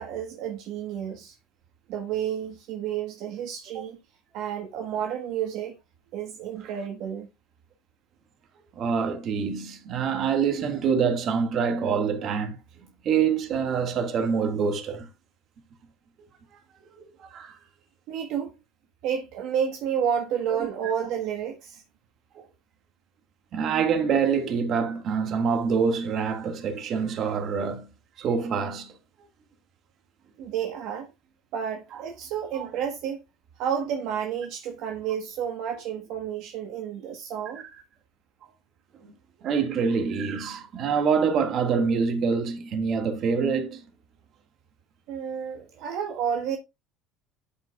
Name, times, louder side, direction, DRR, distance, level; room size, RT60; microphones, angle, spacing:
voice 1, 0.0-1.3 1.9-4.0 4.3-5.8 6.1-7.3 18.1-18.5 19.0-21.8 30.4-31.1 31.5-33.2 33.6-37.7 45.1-46.6, right 8 dB, 65° right, 1.3 m, -30 dB
voice 2, 8.8-12.6 13.0-15.1 17.0-17.6 22.4-22.5 23.5-27.8 28.2-28.9 32.5-32.7 39.0-39.1 39.4-43.8, right 6 dB, 50° right, 1.8 m, -25 dB
12.5 x 5.2 x 2.3 m
supercardioid pair, 105°, 0 cm